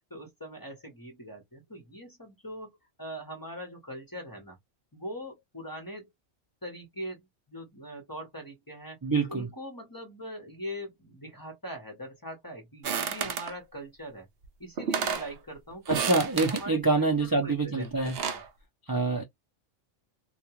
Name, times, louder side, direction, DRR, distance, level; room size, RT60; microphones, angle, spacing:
voice 1, 0.1-2.7 3.0-4.6 4.9-6.1 6.6-9.0 9.3-14.3 14.6-15.8 16.5-18.4, equal, 20° left, 0.8 m, -42 dB
voice 2, 9.0-9.5 15.9-18.1 18.9-19.2, right 3 dB, 30° right, 0.4 m, -26 dB
sound 1, 12.8-13.5 14.4-14.5 14.8-15.3 15.9-16.7 17.8-18.5, right 7 dB, 60° right, 0.7 m, -31 dB
2.4 x 2.3 x 2.9 m
omnidirectional pair, 1.3 m